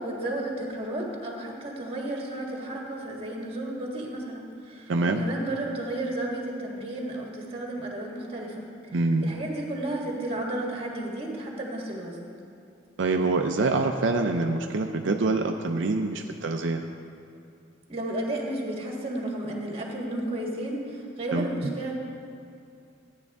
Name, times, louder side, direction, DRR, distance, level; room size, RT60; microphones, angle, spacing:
voice 1, 0.0-8.6 9.2-12.2 17.9-21.9, right 1 dB, 30° right, -1 dB, 1.7 m, -33 dB
voice 2, 4.9-5.2 8.9-9.3 13.0-16.8 21.3-21.5, right 3 dB, 80° right, 4 dB, 0.5 m, -25 dB
13.5 x 9.5 x 3.5 m, 2.5 s
head